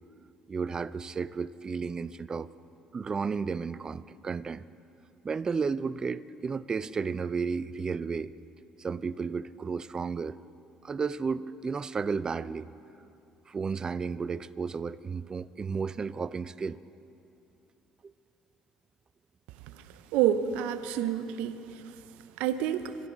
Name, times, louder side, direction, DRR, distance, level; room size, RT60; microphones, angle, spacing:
voice 1, 0.5-2.5 2.9-4.6 5.2-8.3 8.8-10.4 10.8-12.7 13.5-16.8 18.0-18.1, right 5 dB, 35° right, 17 dB, 0.5 m, -33 dB
voice 2, 20.1-21.6 22.4-23.0, right 10 dB, 70° right, 10 dB, 0.6 m, -28 dB
25.5 x 11.5 x 3.9 m, 2.6 s
hypercardioid pair, 60°, 2 cm